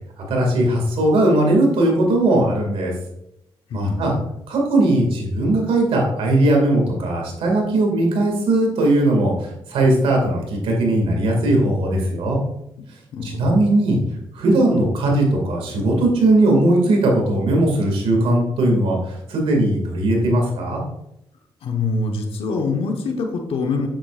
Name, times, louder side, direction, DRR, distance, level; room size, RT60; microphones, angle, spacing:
voice 1, 0.3-2.9 3.7-4.1 4.5-12.4 13.2-14.0 14.3-20.8, right 1 dB, 85° right, 0 dB, 2.2 m, -18 dB
voice 2, 3.7-4.1 13.1-13.4 21.6-23.9, left 3 dB, 75° left, 2 dB, 1.2 m, -24 dB
7.7 x 7.3 x 2.5 m, 0.82 s
cardioid pair, 65°, 9 cm